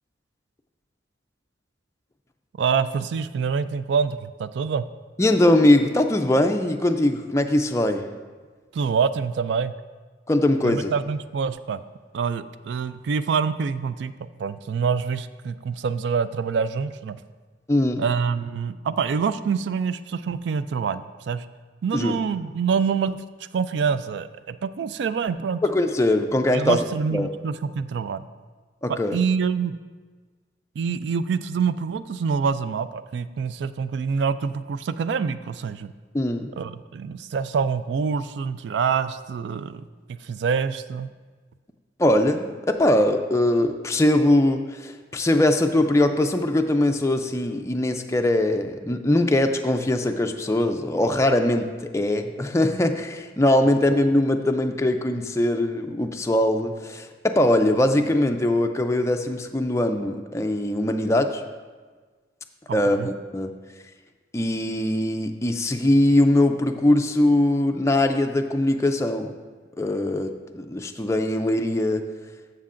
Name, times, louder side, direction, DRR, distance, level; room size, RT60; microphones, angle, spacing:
voice 1, 2.6-4.9 8.7-9.7 10.6-11.8 12.1-14.1 14.4-17.2 18.0-21.5 21.8-23.2 23.5-25.6 26.5-28.3 28.9-29.8 30.8-35.9 36.6-39.8 40.1-41.1 62.7-63.1, right 6 dB, 70° right, 13 dB, 0.3 m, -26 dB
voice 2, 5.2-8.0 10.3-10.9 17.7-18.0 21.9-22.1 25.6-26.8 27.1-27.3 28.8-29.2 36.1-36.5 42.0-61.4 62.7-63.5 64.3-69.3 69.8-72.0, left 1 dB, 15° left, 5 dB, 0.4 m, -21 dB
12.5 x 6.7 x 2.5 m, 1.4 s
head